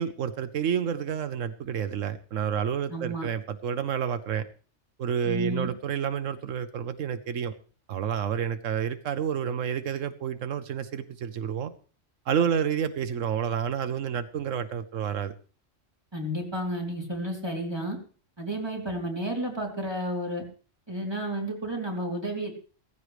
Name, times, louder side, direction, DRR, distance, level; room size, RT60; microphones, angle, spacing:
voice 1, 0.0-4.4 5.0-7.6 7.9-11.7 12.3-15.3, right 8 dB, 85° right, 10 dB, 1.2 m, -29 dB
voice 2, 2.9-3.3 5.2-5.7 16.1-18.0 18.4-20.4 20.9-22.5, right 1 dB, 20° right, -1 dB, 3.2 m, -31 dB
17.0 x 15.0 x 3.2 m, 0.39 s
omnidirectional pair, 1.3 m